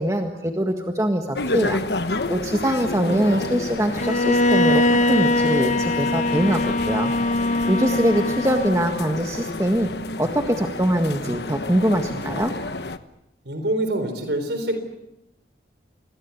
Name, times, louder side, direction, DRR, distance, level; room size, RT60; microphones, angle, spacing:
voice 1, 0.0-1.8 2.1-9.9 10.2-12.5, equal, 15° right, 4 dB, 1.7 m, -23 dB
sound 1, 1.3-13.0, left 2 dB, 70° left, 1.2 m, -30 dB
voice 2, 3.0-3.5 13.5-14.8, right 1 dB, 75° right, 7 dB, 4.0 m, -26 dB
Bowed string instrument, 4.0-9.0, left 1 dB, 45° left, 0.9 m, -21 dB
27.0 x 21.0 x 8.4 m, 0.86 s
head